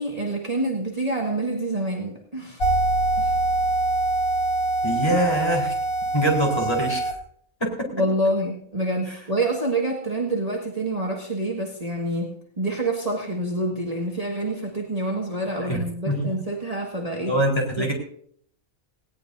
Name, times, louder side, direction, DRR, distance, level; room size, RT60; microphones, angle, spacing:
voice 1, 0.0-2.6 3.2-3.3 7.9-17.4 17.8-17.9, right 1 dB, 25° right, -1 dB, 1.9 m, -27 dB
sound 1, 2.6-7.1, right 2 dB, 80° left, 1.8 m, -24 dB
voice 2, 4.8-5.7 6.1-7.1 7.6-7.9 9.1-9.2 15.6-15.8 16.1-16.3 17.3-17.9, right 1 dB, 20° left, -1 dB, 4.2 m, -24 dB
19.5 x 17.0 x 2.7 m, 0.63 s
omnidirectional pair, 1.5 m